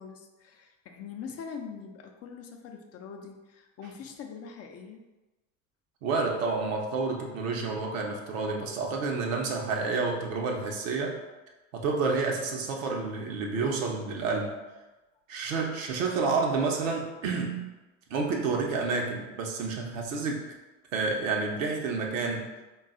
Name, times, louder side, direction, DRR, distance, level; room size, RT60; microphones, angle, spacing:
voice 1, 0.0-5.1, left 6 dB, 40° left, 4 dB, 0.5 m, -43 dB
voice 2, 6.0-11.2 11.7-14.5 15.3-17.7 18.1-20.5 20.9-22.5, right 4 dB, 75° right, 1 dB, 0.8 m, -29 dB
3.8 x 2.4 x 3.7 m, 1.1 s
hypercardioid pair, 70°, 40 cm